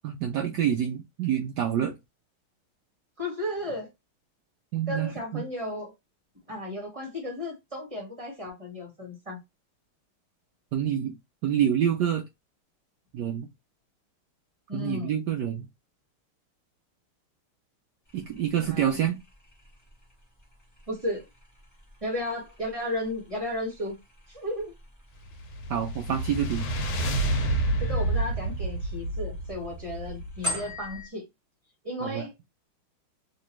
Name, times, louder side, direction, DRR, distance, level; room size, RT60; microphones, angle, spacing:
voice 1, 0.0-2.0 4.7-5.4 10.7-11.2 11.4-12.2 13.1-13.5 14.7-15.7 18.1-19.2 25.7-26.7 32.0-32.2, right 9 dB, 85° right, 0.9 m, -27 dB
voice 2, 3.2-3.9 4.9-5.9 6.5-9.4 14.7-15.2 18.6-18.9 20.9-21.2 22.0-24.0 24.3-24.7 27.8-31.2 31.8-32.3, left 1 dB, 20° right, 1.2 m, -34 dB
sound 1, 18.0-31.1, left 1 dB, 10° left, 0.9 m, -44 dB
sound 2, 25.2-30.7, right 2 dB, 80° left, 1.7 m, -29 dB
3.3 x 3.1 x 3.0 m
omnidirectional pair, 2.4 m